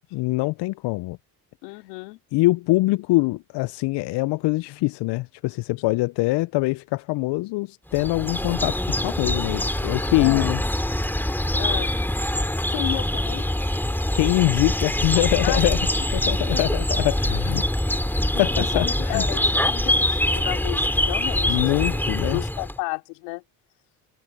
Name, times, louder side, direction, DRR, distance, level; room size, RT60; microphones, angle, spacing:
voice 1, 0.1-1.2 2.3-10.6 14.1-15.8 16.1-17.6 18.4-19.3 21.5-22.4, left 20 dB, 65° left, 0.6 m, -23 dB
voice 2, 1.6-2.2 10.2-10.5 11.5-11.9 12.7-13.5 15.4-15.6 16.0-16.1 16.5-16.6 17.0-17.1 18.3-21.6 21.9-22.0 22.3-23.4, left 26 dB, 85° left, 2.9 m, -32 dB
sound 1, 7.9-22.8, left 1 dB, 5° left, 2.8 m, -24 dB
hypercardioid pair, 60°, 46 cm